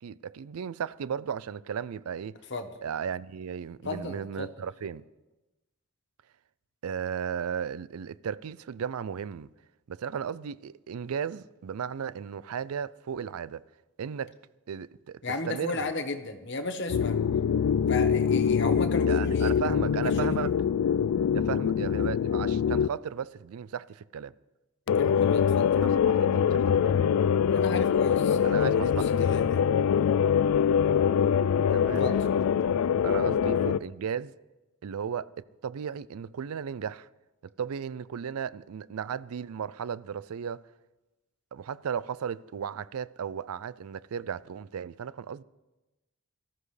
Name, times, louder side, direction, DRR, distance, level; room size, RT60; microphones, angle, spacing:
voice 1, 0.0-2.4 2.8-5.0 6.8-9.5 9.9-13.6 14.0-14.3 14.7-15.9 19.1-20.5 21.3-24.3 25.8-27.0 28.4-29.4 31.7-32.3 32.6-34.3 34.8-35.3 35.6-37.1 37.6-40.6 41.5-45.4, right 7 dB, 80° right, 0.4 m, -35 dB
voice 2, 3.8-4.5 15.2-17.2 17.9-19.5 20.2-20.5 24.9-25.7 27.5-29.6 32.0-32.2, left 2 dB, 50° left, 1.1 m, -34 dB
sound 1, 16.9-22.9 24.9-33.8, left 7 dB, 75° left, 0.3 m, -24 dB
18.5 x 14.0 x 3.3 m
head